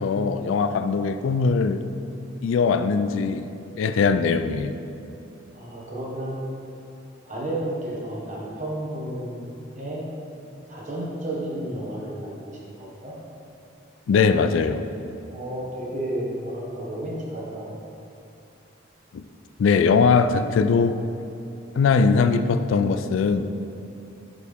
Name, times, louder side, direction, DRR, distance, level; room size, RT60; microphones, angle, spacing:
voice 1, 0.0-1.8 2.4-3.5 3.8-4.7 14.1-14.8 19.1-19.2 19.6-21.0 21.8-23.5, left 5 dB, 90° left, 10 dB, 0.3 m, -21 dB
voice 2, 5.5-6.4 7.2-9.5 9.8-10.0 10.7-13.1 15.3-17.8, right 1 dB, 40° right, -4 dB, 1.3 m, -32 dB
7.9 x 5.3 x 3.5 m, 2.7 s
head